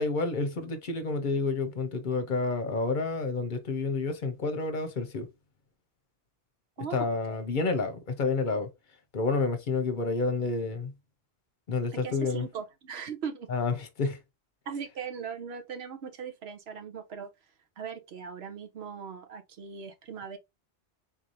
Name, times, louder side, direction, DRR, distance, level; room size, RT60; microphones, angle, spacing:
voice 1, 0.0-5.3 6.9-8.7 9.1-10.9 11.7-12.5 13.5-14.2, left 3 dB, 55° left, 0.8 m, -29 dB
voice 2, 6.8-7.5 11.9-13.5 14.7-17.3 17.8-20.4, right 6 dB, 90° right, 1.0 m, -39 dB
4.0 x 2.6 x 2.9 m
omnidirectional pair, 1.0 m